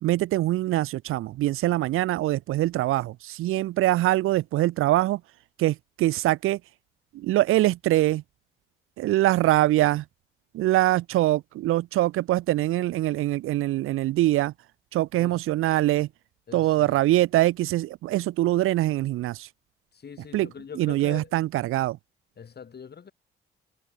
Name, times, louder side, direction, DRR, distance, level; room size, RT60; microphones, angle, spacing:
voice 1, 0.0-5.2 5.6-6.6 7.1-8.2 9.0-10.0 10.5-14.5 14.9-16.1 16.5-19.5 20.3-20.5 20.8-22.0, right 16 dB, 85° right, 0.6 m, -23 dB
voice 2, 16.5-17.0 19.9-21.3 22.4-23.1, left 6 dB, 50° left, 4.4 m, -42 dB
cardioid pair, 75°, 21 cm